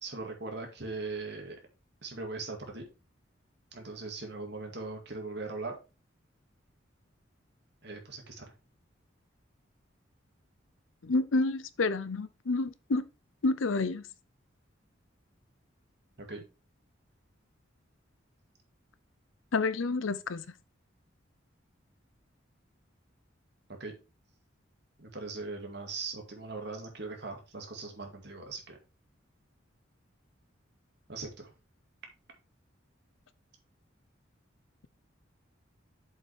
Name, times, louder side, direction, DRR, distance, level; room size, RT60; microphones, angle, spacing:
voice 1, 0.0-1.6 2.0-2.9 3.7-5.8 7.8-8.5 16.2-16.4 23.8-23.9 25.0-28.8 31.1-31.5, right 3 dB, 60° right, 2.1 m, -40 dB
voice 2, 11.0-13.0 13.4-14.1 19.5-20.4, left 3 dB, 85° left, 0.6 m, -29 dB
7.3 x 5.7 x 3.4 m
head